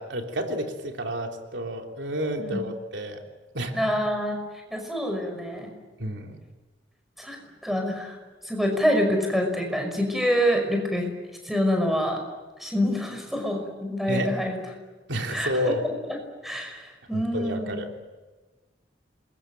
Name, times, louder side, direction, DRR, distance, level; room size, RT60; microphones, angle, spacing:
voice 1, 0.0-3.2 3.5-3.8 6.0-6.4 14.1-14.3 15.1-15.9 17.1-17.9, equal, 80° right, 3 dB, 3.3 m, -30 dB
voice 2, 2.4-2.7 3.7-4.4 4.7-5.7 7.2-7.4 7.6-8.2 8.4-11.1 11.4-12.2 12.6-14.6 15.3-15.5 16.4-17.8, equal, ahead, 3 dB, 5.5 m, -26 dB
27.0 x 22.5 x 9.1 m, 1.3 s
head